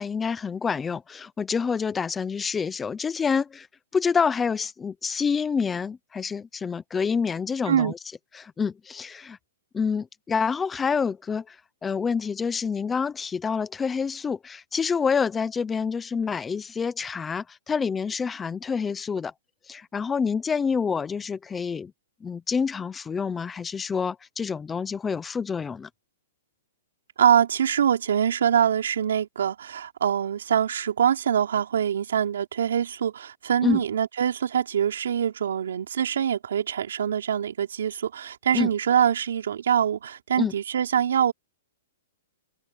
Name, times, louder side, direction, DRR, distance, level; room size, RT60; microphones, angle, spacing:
voice 1, 0.0-3.7 3.9-8.0 8.3-9.4 9.7-11.6 11.8-19.3 19.7-21.9 22.2-25.9 33.6-33.8 38.5-38.7 40.4-40.5, left 6 dB, 10° left, 0.7 m, -27 dB
voice 2, 27.2-41.3, right 8 dB, 80° right, 3.4 m, -24 dB
open air
hypercardioid pair, 170°, 0 cm